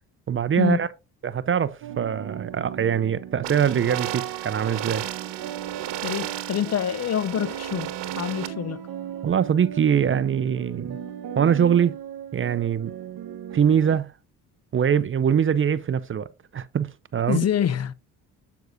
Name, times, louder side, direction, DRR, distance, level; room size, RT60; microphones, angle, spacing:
voice 1, 0.3-0.9 1.2-5.0 9.2-11.0 11.4-12.0 12.3-12.9 13.5-14.1 14.7-16.3 16.5-17.4, right 8 dB, 30° right, 0.5 m, -23 dB
sound 1, 1.8-14.0, right 9 dB, 65° right, 1.1 m, -37 dB
sound 2, 3.4-8.5, right 12 dB, 90° right, 1.0 m, -34 dB
voice 2, 6.0-7.9 8.2-8.8 17.3-17.9, left 9 dB, 40° left, 0.6 m, -26 dB
7.9 x 7.1 x 2.6 m
supercardioid pair, 80°, 40 cm